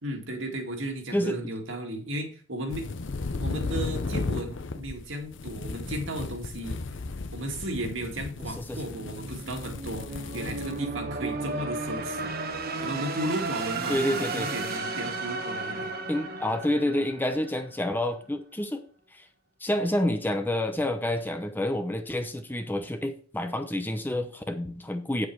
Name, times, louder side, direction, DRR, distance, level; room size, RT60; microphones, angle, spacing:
voice 1, 0.0-2.9 3.4-6.8 7.3-12.3 12.8-15.9 16.4-16.6, right 1 dB, 65° right, 3 dB, 2.1 m, -35 dB
sound 1, 2.7-10.8, left 3 dB, 60° left, 0.7 m, -35 dB
sound 2, 7.5-17.9, right 3 dB, 45° right, 1.1 m, -35 dB
voice 2, 13.9-14.5 16.1-18.8 19.1-19.2 19.6-25.3, left 1 dB, 10° left, 7 dB, 0.7 m, -28 dB
8.6 x 7.5 x 4.6 m, 0.43 s
head